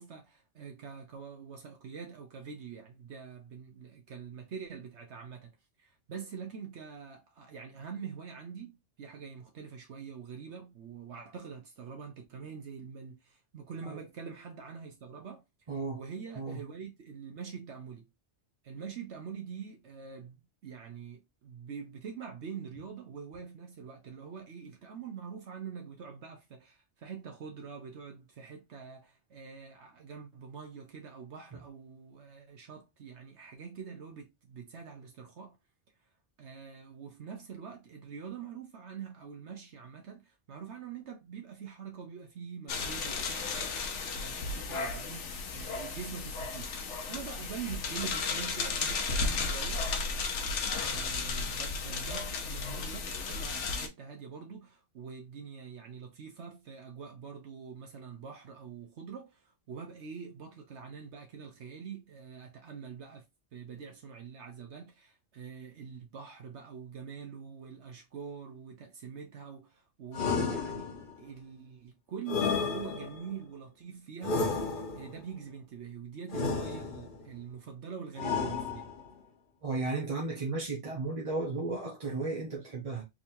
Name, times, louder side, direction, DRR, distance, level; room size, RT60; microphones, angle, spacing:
voice 1, 0.0-5.5 5.8-15.4 15.9-18.1 18.6-20.4 20.6-35.6 36.4-46.7 47.1-49.8 50.8-63.3 63.5-70.9 71.2-74.4 74.9-78.9, right 6 dB, 75° right, 1.1 m, -45 dB
voice 2, 15.7-16.0 16.4-16.6 79.6-83.0, right 3 dB, 35° right, 0.7 m, -34 dB
sound 1, 42.7-53.9, left 4 dB, 80° left, 1.1 m, -34 dB
sound 2, 70.1-71.2 72.3-73.3 74.2-75.2 76.3-77.2 78.2-79.1, left 4 dB, 50° left, 1.0 m, -32 dB
3.8 x 3.0 x 2.6 m
omnidirectional pair, 1.2 m